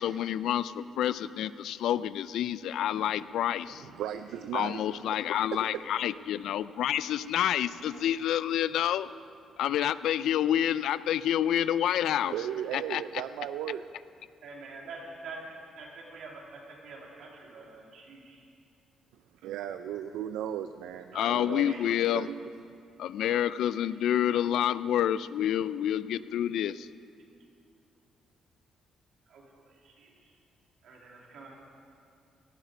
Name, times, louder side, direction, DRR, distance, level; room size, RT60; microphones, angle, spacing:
voice 1, 0.0-3.8 4.5-9.1 9.6-12.3 12.7-13.0 21.1-22.3 23.0-26.9, left 11 dB, 80° left, 16 dB, 0.4 m, -28 dB
sound 1, 3.0-8.1, right 2 dB, 45° right, 3.6 m, -59 dB
voice 2, 3.8-5.0 5.5-5.8 12.3-13.8 19.4-21.7 22.1-22.4, right 10 dB, 90° right, 9 dB, 0.4 m, -36 dB
voice 3, 14.4-18.4 21.1-21.9 24.3-24.5 25.5-25.6 29.3-30.3 30.8-31.5, right 3 dB, 75° right, -2 dB, 3.1 m, -46 dB
18.0 x 12.5 x 5.2 m, 2.4 s
cardioid pair, 90°, 0 cm